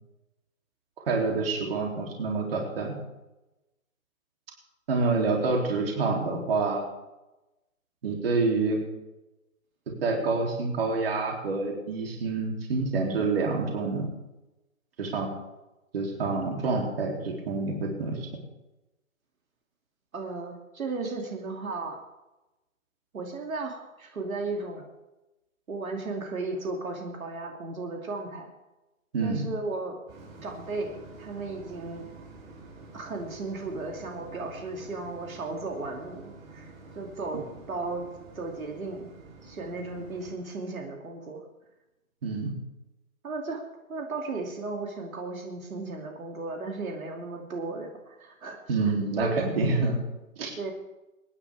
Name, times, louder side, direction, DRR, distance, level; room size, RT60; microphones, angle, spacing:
voice 1, 1.1-2.9 4.9-6.8 8.0-8.8 10.0-14.1 15.0-15.3 15.9-18.3 29.1-29.4 42.2-42.5 48.7-50.0 50.4-50.5, right 3 dB, 45° right, 0 dB, 3.1 m, -27 dB
voice 2, 20.1-22.0 23.1-24.9 25.7-28.5 29.2-30.0 30.4-32.1 32.9-38.1 38.3-39.1 39.4-41.4 43.2-43.6 43.9-49.5 50.6-50.7, right 3 dB, 75° right, 1 dB, 2.8 m, -35 dB
sound 1, 30.1-40.4, right 3 dB, 20° right, 6.4 m, -48 dB
25.5 x 10.0 x 3.5 m, 1.0 s
hypercardioid pair, 165°, 42 cm